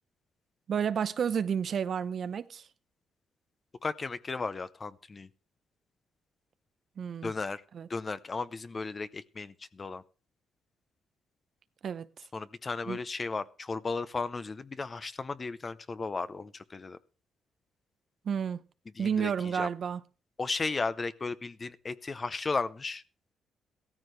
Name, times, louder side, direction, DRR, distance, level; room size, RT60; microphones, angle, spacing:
voice 1, 0.7-2.6 7.0-7.3 7.7-7.9 11.8-12.1 12.9-13.0 18.2-18.6 19.0-20.0, right 7 dB, 55° right, 0.7 m, -31 dB
voice 2, 3.8-5.3 7.2-7.6 7.9-10.0 12.3-17.0 19.0-19.7 20.4-23.0, left 4 dB, 30° left, 0.7 m, -35 dB
16.0 x 14.0 x 3.3 m
cardioid pair, 90°, 0 cm